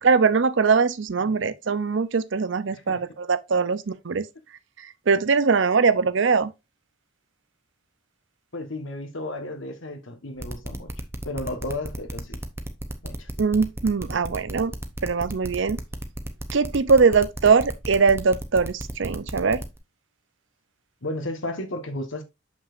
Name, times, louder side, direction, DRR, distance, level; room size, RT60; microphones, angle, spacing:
voice 1, 0.0-4.3 4.8-6.5 13.4-14.7 15.0-15.8 16.5-19.6, right 5 dB, 65° right, 0.6 m, -21 dB
voice 2, 1.2-1.5 2.9-3.0 8.5-10.9 11.2-12.4 13.0-13.3 21.0-22.2, left 1 dB, 70° left, 1.4 m, -33 dB
sound 1, 10.4-19.8, right 1 dB, 10° right, 0.7 m, -34 dB
6.8 x 5.7 x 2.5 m
head